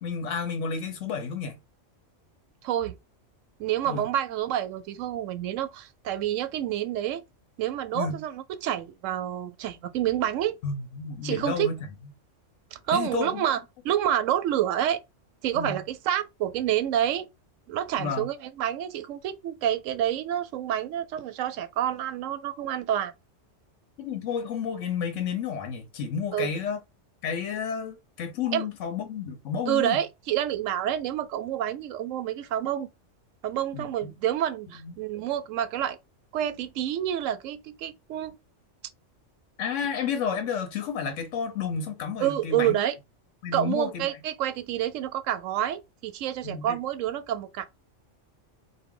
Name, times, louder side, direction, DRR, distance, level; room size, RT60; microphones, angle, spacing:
voice 1, 0.0-1.6 3.9-4.1 7.9-8.2 10.6-11.8 12.9-13.5 15.5-15.8 18.0-18.3 24.0-26.8 27.2-30.0 33.7-34.1 34.8-35.0 39.6-42.8 43.4-44.1 46.4-46.8, left 6 dB, 75° left, 1.1 m, -31 dB
voice 2, 2.6-2.9 3.6-7.2 7.6-10.6 11.2-11.7 12.7-13.6 13.8-15.0 15.4-17.3 17.7-23.1 26.3-26.5 28.5-28.7 29.7-32.9 33.4-36.0 36.3-38.3 42.2-43.0 43.5-47.7, right 11 dB, 85° right, 0.9 m, -28 dB
4.2 x 2.1 x 3.7 m
omnidirectional pair, 1.3 m